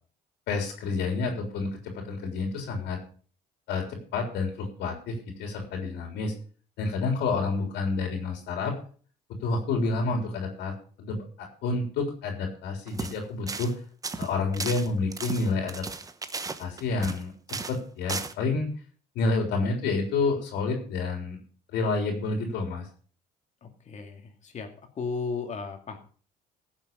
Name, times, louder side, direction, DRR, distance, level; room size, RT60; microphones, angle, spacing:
voice 1, 0.5-3.0 3.7-6.3 6.8-8.7 9.4-13.7 14.2-15.8 16.6-18.7 19.2-21.4 21.7-22.8, left 3 dB, 85° left, 2 dB, 3.6 m, -29 dB
sound 1, 12.9-13.2 13.5-13.7 14.0-17.2 17.5-17.8 18.1-18.3, right 4 dB, 20° right, 1.0 m, -35 dB
voice 2, 23.6-24.7 24.9-26.0, left 5 dB, 45° left, 4 dB, 2.6 m, -35 dB
15.5 x 7.3 x 5.4 m, 0.43 s
cardioid pair, 110°, 17 cm